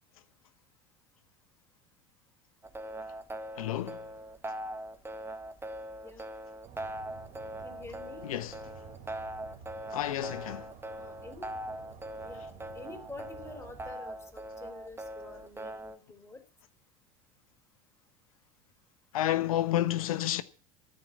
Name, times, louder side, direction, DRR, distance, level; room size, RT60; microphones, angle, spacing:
sound 1, 2.6-16.0, right 1 dB, 15° right, 1.7 m, -41 dB
voice 1, 3.6-4.0 8.3-8.5 9.9-10.7 19.1-20.4, left 13 dB, 75° left, 1.1 m, -30 dB
sound 2, 6.6-13.9, right 6 dB, 45° right, 3.5 m, -52 dB
voice 2, 7.6-8.2 10.9-11.5 12.2-12.5 12.7-16.4, left 3 dB, 15° left, 3.8 m, -47 dB
13.5 x 9.2 x 7.4 m
hypercardioid pair, 75°, 18 cm